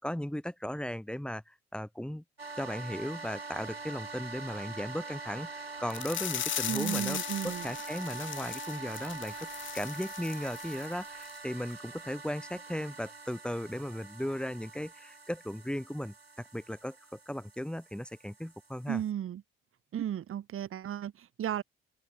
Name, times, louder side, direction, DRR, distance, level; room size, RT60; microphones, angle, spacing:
voice 1, 0.0-2.2 2.5-7.2 7.4-9.5 9.7-16.1 16.5-19.0, equal, 5° left, 6.6 m, -36 dB
sound 1, 2.4-19.1, right 4 dB, 90° right, 3.4 m, -44 dB
sound 2, 5.9-10.9 11.2-11.4 11.8-11.9, left 11 dB, 40° left, 1.0 m, -38 dB
voice 2, 6.7-7.7 18.9-19.4 19.9-21.6, right 10 dB, 45° right, 2.4 m, -34 dB
figure-of-eight pair, 50°, 30 cm